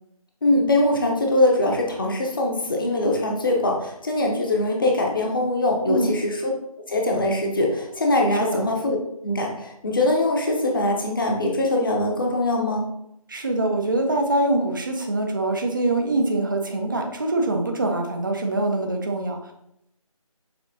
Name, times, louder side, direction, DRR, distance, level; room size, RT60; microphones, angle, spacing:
voice 1, 0.4-6.4 6.9-9.0 9.2-12.9, left 1 dB, 35° left, 0 dB, 0.7 m, -22 dB
voice 2, 13.3-19.5, right 2 dB, 35° right, 3 dB, 0.5 m, -24 dB
6.8 x 2.9 x 2.7 m, 0.79 s
figure-of-eight pair, 165°, 19 cm